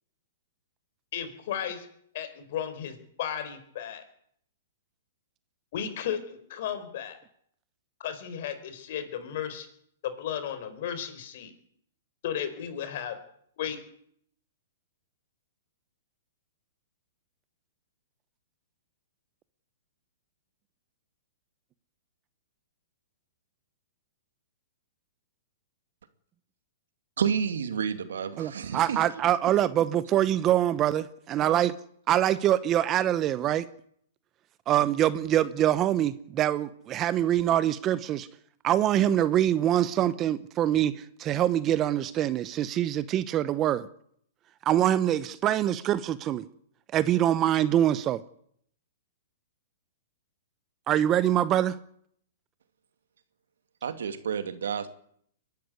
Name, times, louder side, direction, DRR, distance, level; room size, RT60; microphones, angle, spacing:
voice 1, 1.1-1.9 2.1-4.0 5.7-7.2 8.0-9.7 10.0-11.5 12.2-13.2 13.6-13.8, left 9 dB, 55° left, 4.4 m, -34 dB
voice 2, 27.2-29.0 53.8-54.9, right 7 dB, 80° right, 2.3 m, -30 dB
voice 3, 28.4-31.7 32.1-33.7 34.7-38.3 38.6-43.9 44.7-46.4 46.9-48.2 50.9-51.8, right 11 dB, 25° right, 0.8 m, -24 dB
22.5 x 11.5 x 9.7 m
hypercardioid pair, 145°, 0 cm